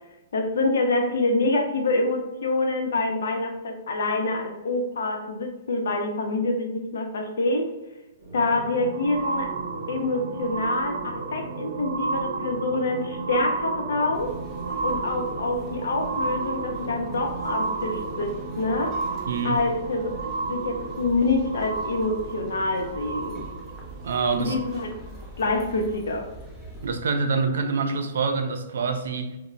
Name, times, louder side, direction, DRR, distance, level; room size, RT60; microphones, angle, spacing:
voice 1, 0.3-7.7 8.3-9.5 9.9-14.3 14.8-18.9 19.4-20.1 20.5-23.4 24.4-24.9 25.4-26.3, left 2 dB, 80° left, 3 dB, 0.5 m, -26 dB
sound 1, 8.2-25.1 25.8-25.9, right 4 dB, 55° right, 0.9 m, -32 dB
sound 2, 14.1-26.9, equal, ahead, 0.5 m, -44 dB
voice 2, 19.3-19.6 24.0-24.6 26.8-29.4, right 4 dB, 75° right, 6 dB, 0.4 m, -26 dB
2.1 x 2.0 x 3.7 m, 1.0 s
hypercardioid pair, 160°, 0 cm